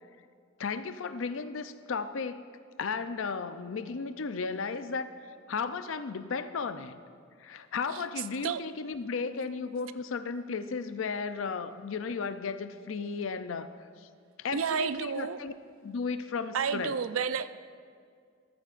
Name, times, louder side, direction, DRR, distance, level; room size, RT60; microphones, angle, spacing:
voice 1, 0.6-2.4 2.8-5.1 5.5-7.0 7.4-14.1 14.4-15.5 15.8-16.9, left 5 dB, 70° left, 11 dB, 0.5 m, -34 dB
voice 2, 14.5-15.4 16.5-17.5, right 6 dB, 85° right, 13 dB, 0.4 m, -30 dB
14.5 x 13.5 x 2.5 m, 2.1 s
head